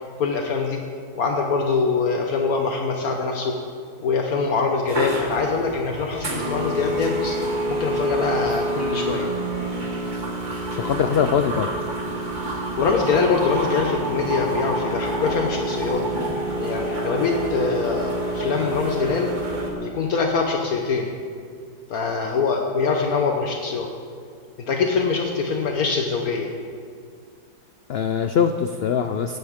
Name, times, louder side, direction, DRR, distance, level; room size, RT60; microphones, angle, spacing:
voice 1, 0.2-0.8 1.2-3.6 4.0-7.4 7.7-9.3 12.8-16.0 16.6-19.3 19.8-21.1 21.9-23.9 24.7-26.5, left 4 dB, 70° left, 2 dB, 1.4 m, -23 dB
sound 1, 4.9-19.7, right 1 dB, 30° right, 1.5 m, -27 dB
voice 2, 10.8-11.7 27.9-29.4, left 7 dB, 85° left, 8 dB, 0.5 m, -22 dB
17.5 x 11.5 x 3.6 m, 2.1 s
omnidirectional pair, 1.7 m